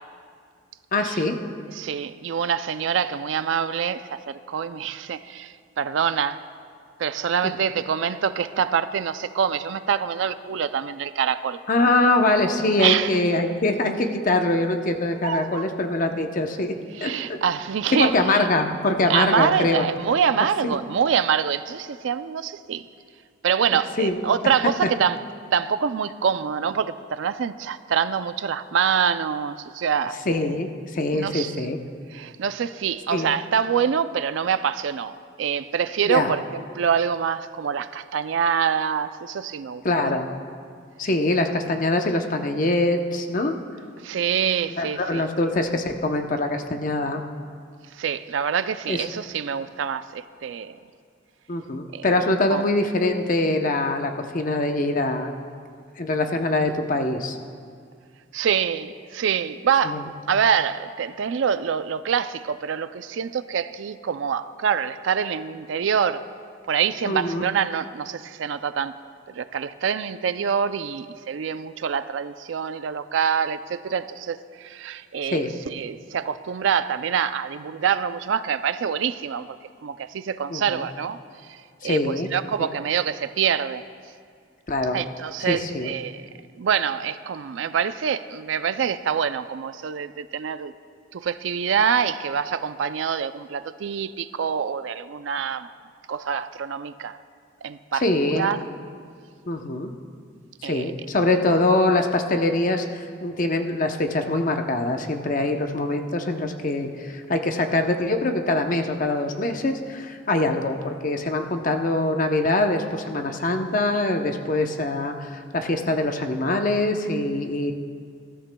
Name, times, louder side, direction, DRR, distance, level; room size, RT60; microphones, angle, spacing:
voice 1, 0.9-1.4 11.7-16.7 17.0-17.4 18.0-19.9 24.0-24.2 24.8-24.9 30.3-31.8 33.1-33.3 36.1-36.3 39.8-40.3 41.0-43.6 44.8-47.2 48.9-49.0 51.5-55.3 56.0-57.4 59.8-60.0 67.1-67.4 75.3-75.5 80.5-80.8 81.8-82.3 82.6-82.7 84.7-85.0 85.4-85.9 98.0-98.5 99.5-99.9 100.6-117.7, left 2 dB, 40° left, 5 dB, 0.7 m, -23 dB
voice 2, 1.7-6.4 7.0-11.6 12.8-13.2 15.2-15.6 17.0-18.4 19.1-22.9 23.4-25.2 25.5-30.2 31.1-31.6 32.1-40.2 44.0-45.2 47.9-50.8 51.9-52.1 52.5-52.6 58.3-66.3 66.7-69.0 69.3-79.6 79.8-81.2 81.5-83.8 84.9-86.2 86.6-90.7 91.1-95.7 96.1-97.2 97.6-98.6 100.6-100.9, right 7 dB, 70° right, 13 dB, 0.4 m, -25 dB
20.0 x 13.5 x 2.2 m, 2.1 s
head